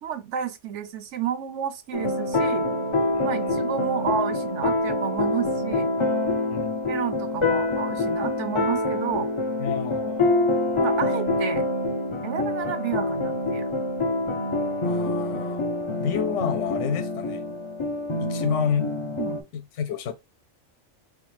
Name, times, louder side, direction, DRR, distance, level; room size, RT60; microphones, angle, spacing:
voice 1, 0.0-2.7 3.2-5.9 6.9-9.3 10.8-11.6 12.2-13.7 15.8-15.9 19.2-19.4, right 8 dB, 70° right, 0.9 m, -31 dB
sound 1, 1.9-19.4, left 2 dB, 45° left, 0.4 m, -26 dB
voice 2, 3.1-3.6 6.5-6.8 9.6-10.3 14.8-15.6 16.0-17.5 18.2-18.9 19.5-20.1, left 7 dB, 70° left, 0.9 m, -29 dB
4.2 x 2.3 x 3.0 m
omnidirectional pair, 1.4 m